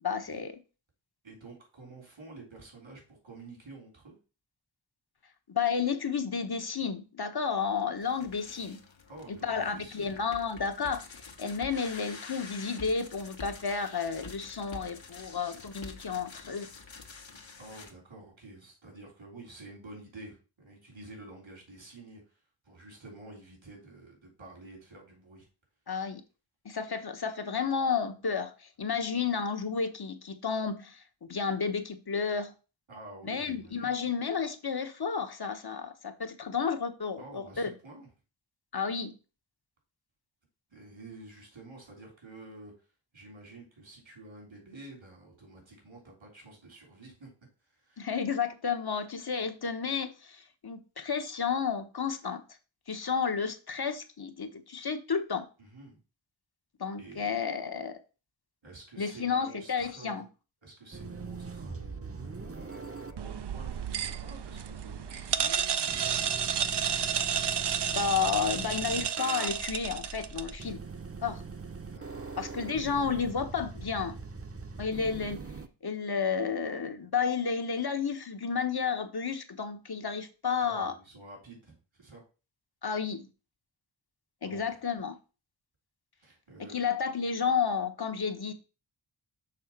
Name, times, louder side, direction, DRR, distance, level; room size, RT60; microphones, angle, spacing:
voice 1, 0.0-0.6 5.5-8.8 9.4-16.7 25.9-26.2 26.6-31.0 31.3-32.5 33.3-37.7 38.7-39.1 48.0-52.4 52.9-55.5 56.8-58.0 59.0-60.2 67.9-70.8 71.2-71.4 72.4-74.2 74.8-75.4 75.8-80.9 82.8-83.3 84.4-85.2 86.7-88.5, left 6 dB, 55° left, 1.1 m, -31 dB
voice 2, 1.2-4.2 9.1-10.2 17.6-25.5 32.9-34.0 37.2-38.1 40.7-42.9 43.1-47.3 47.6-48.1 55.6-56.0 57.0-57.4 58.6-60.3 60.6-66.1 71.8-72.4 80.6-82.2 84.4-84.8 86.2-86.9, right 2 dB, 85° right, 4.0 m, -50 dB
sound 1, 7.9-17.9, left 4 dB, 75° left, 1.4 m, -47 dB
sound 2, 60.9-75.7, right 4 dB, 30° right, 0.8 m, -42 dB
sound 3, 63.2-70.6, right 8 dB, 65° right, 0.6 m, -31 dB
6.5 x 3.7 x 5.9 m
cardioid pair, 50°, 46 cm